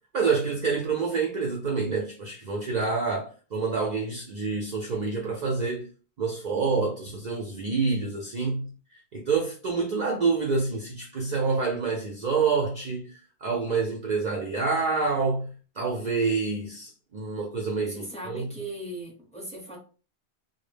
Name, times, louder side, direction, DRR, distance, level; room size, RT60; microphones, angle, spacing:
voice 1, 0.1-5.9 6.2-18.5, right 4 dB, 60° right, 0.5 m, -27 dB
voice 2, 17.9-19.8, right 1 dB, 5° left, 0.6 m, -38 dB
2.1 x 2.0 x 3.2 m
omnidirectional pair, 1.2 m